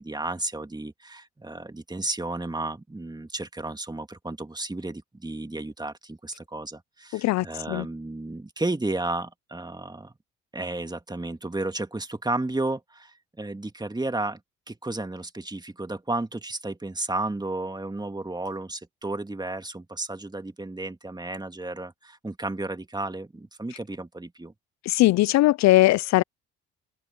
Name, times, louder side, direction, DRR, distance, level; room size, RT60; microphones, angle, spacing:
voice 1, 0.0-10.1 10.5-14.4 14.7-24.5, right 2 dB, 15° right, 2.5 m, -33 dB
voice 2, 7.1-7.9 24.8-26.2, left 17 dB, 65° left, 0.6 m, -20 dB
open air
hypercardioid pair, 55°, 30 cm